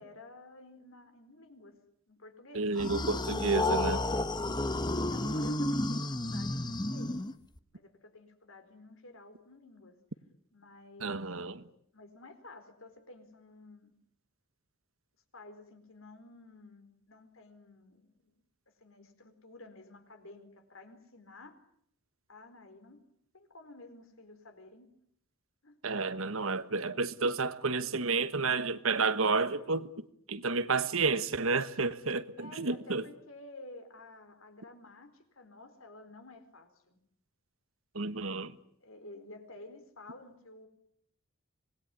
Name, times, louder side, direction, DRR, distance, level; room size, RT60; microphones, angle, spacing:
voice 1, 0.0-1.7 2.1-2.7 4.4-7.1 7.7-10.0 10.5-11.2 11.9-14.0 15.3-18.4 18.8-21.6 22.3-23.0 23.3-24.9 25.6-25.8 32.4-37.0 38.8-40.7, left 2 dB, 70° left, 4.5 m, -52 dB
voice 2, 2.5-4.0 11.0-11.6 25.8-29.9 30.3-33.1 37.9-38.5, right 4 dB, 70° right, 1.4 m, -30 dB
sound 1, 2.8-7.6, left 2 dB, 20° left, 1.1 m, -31 dB
26.0 x 20.5 x 9.7 m
head